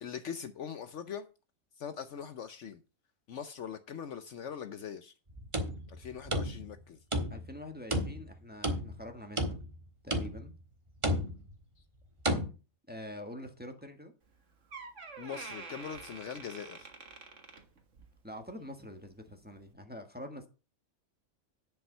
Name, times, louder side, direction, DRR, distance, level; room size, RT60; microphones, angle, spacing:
voice 1, 0.0-1.3 1.8-2.8 3.3-5.1 5.9-7.0 15.2-16.9, left 7 dB, 65° left, 1.0 m, -42 dB
sound 1, 5.3-6.8 7.1-7.6 7.9-9.0 9.4-9.8 10.1-10.6 11.0-11.5 12.2-12.5, equal, 25° right, 1.4 m, -32 dB
voice 2, 7.3-9.6 10.0-10.5 12.9-14.1 18.2-20.5, left 1 dB, 5° right, 1.4 m, -45 dB
Door, 14.2-14.4 14.7-18.2 18.5-18.8 19.6-19.7, right 4 dB, 60° right, 1.9 m, -47 dB
10.5 x 5.6 x 5.5 m
omnidirectional pair, 1.4 m